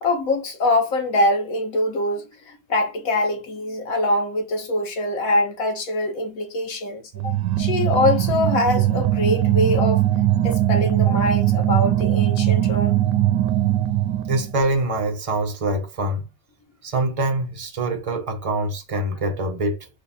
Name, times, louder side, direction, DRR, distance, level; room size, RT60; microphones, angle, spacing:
voice 1, 0.0-10.0 10.4-13.0, left 2 dB, 55° left, 1.5 m, -23 dB
sound 1, 7.1-14.5, right 13 dB, 90° right, 1.2 m, -20 dB
voice 2, 14.3-16.2 16.8-19.9, right 2 dB, 60° right, 0.3 m, -24 dB
3.9 x 2.5 x 4.0 m
omnidirectional pair, 1.8 m